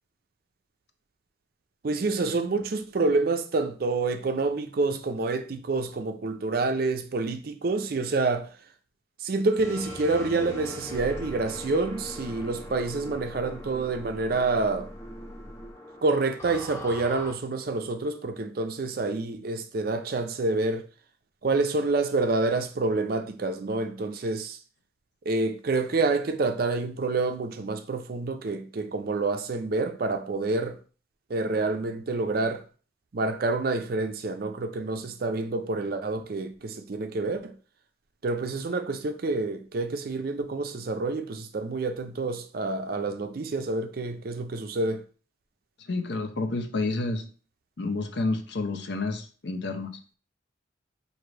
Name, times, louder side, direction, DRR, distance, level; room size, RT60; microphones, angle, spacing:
voice 1, 1.8-8.6 9.2-14.9 16.0-20.8 21.4-24.6 25.3-30.8 31.3-32.6 33.1-37.5 38.2-45.0, right 3 dB, 50° right, 0.4 m, -28 dB
sound 1, 9.6-17.3, left 1 dB, 15° left, 0.5 m, -40 dB
voice 2, 45.8-47.2 47.8-50.0, left 3 dB, 60° left, 0.5 m, -30 dB
4.8 x 2.6 x 3.2 m
head